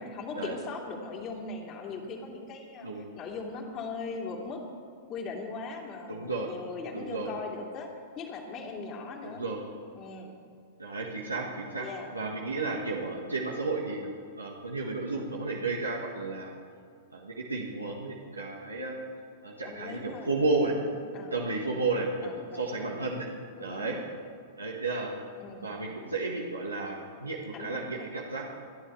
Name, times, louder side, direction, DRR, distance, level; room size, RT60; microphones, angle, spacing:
voice 1, 0.0-4.6 5.1-7.9 8.2-9.5 10.0-10.4 11.8-12.2 19.6-20.3 20.6-20.9 21.1-21.8 22.2-23.2 23.6-24.1 25.4-25.7 27.5-28.1, left 4 dB, 35° left, 1 dB, 2.7 m, -40 dB
voice 2, 6.1-6.5 6.9-7.3 9.2-9.6 10.8-11.9 12.1-14.1 14.4-16.5 17.1-19.0 19.4-20.7 21.3-23.3 23.6-24.0 24.6-25.1 25.6-28.5, right 3 dB, 90° right, -1 dB, 1.5 m, -32 dB
26.5 x 10.0 x 3.3 m, 2.2 s
figure-of-eight pair, 100°, 0 cm